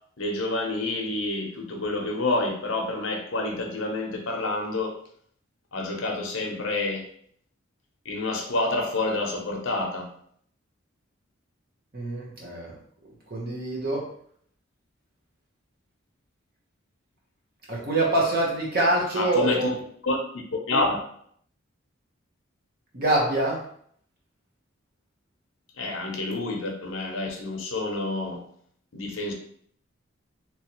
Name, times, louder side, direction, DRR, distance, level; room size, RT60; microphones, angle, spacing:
voice 1, 0.2-5.0 5.7-7.0 8.1-10.1 19.1-19.8 20.0-21.0 25.8-28.4 28.9-29.3, left 2 dB, 75° left, 2 dB, 0.8 m, -28 dB
voice 2, 11.9-12.8 13.3-14.0 17.7-19.7 22.9-23.6, right 2 dB, 45° right, -3 dB, 1.1 m, -25 dB
3.2 x 3.1 x 3.0 m, 0.63 s
head